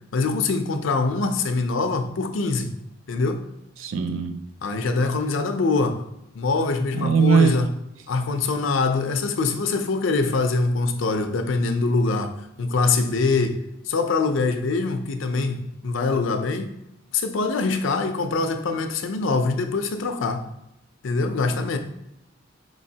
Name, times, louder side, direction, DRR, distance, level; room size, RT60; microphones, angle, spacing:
voice 1, 0.1-2.7 3.1-3.4 4.6-6.0 6.3-7.7 8.1-12.3 12.6-16.7 17.1-20.4 21.0-21.8, left 3 dB, 75° left, 0.5 m, -24 dB
voice 2, 3.8-4.4 6.9-7.6, right 6 dB, 80° right, 0.4 m, -20 dB
5.1 x 3.1 x 2.8 m
head